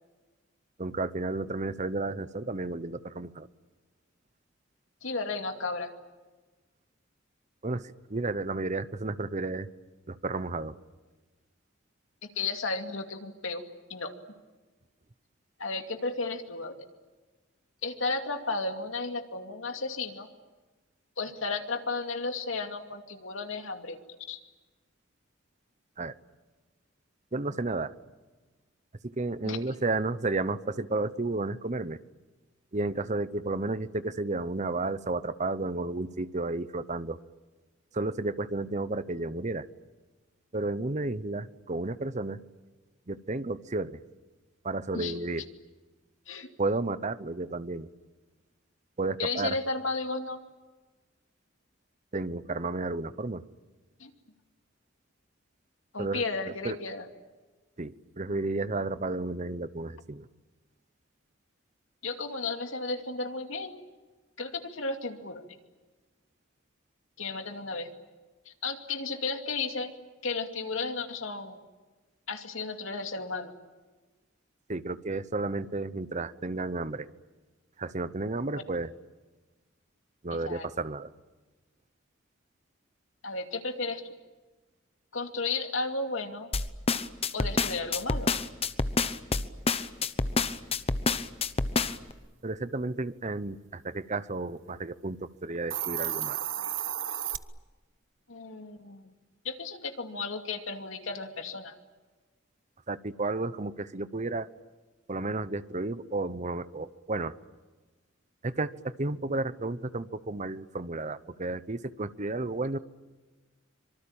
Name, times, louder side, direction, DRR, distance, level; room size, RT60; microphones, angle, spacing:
voice 1, 0.8-3.5 7.6-9.7 10.1-10.8 26.0-26.1 27.3-27.9 29.0-32.0 32.7-37.2 37.9-39.7 40.5-42.4 43.1-44.0 44.6-45.4 46.6-47.9 49.0-49.6 52.1-53.4 56.0-56.2 56.6-56.8 57.8-60.3 74.7-77.1 77.8-78.9 80.2-81.1 92.4-96.4 102.9-104.5 105.1-107.3 108.4-112.8, right 2 dB, 35° right, 14 dB, 0.9 m, -32 dB
voice 2, 5.0-5.9 12.2-13.6 13.9-14.1 15.6-16.9 17.8-20.3 21.2-24.0 24.3-24.4 29.4-29.7 44.9-45.2 46.3-46.5 49.2-50.4 54.0-54.1 55.9-57.0 62.0-63.8 64.4-65.4 67.2-67.9 68.5-69.9 70.2-71.6 72.3-73.5 80.3-80.7 83.2-84.0 85.1-86.5 87.3-88.3 98.3-99.1 99.4-101.7, left 3 dB, 85° left, 5 dB, 2.5 m, -34 dB
sound 1, 86.5-92.1, left 4 dB, 30° left, 1.0 m, -27 dB
Hiss, 95.6-97.4, right 11 dB, 70° right, 1.1 m, -32 dB
25.5 x 24.0 x 8.9 m, 1.2 s
head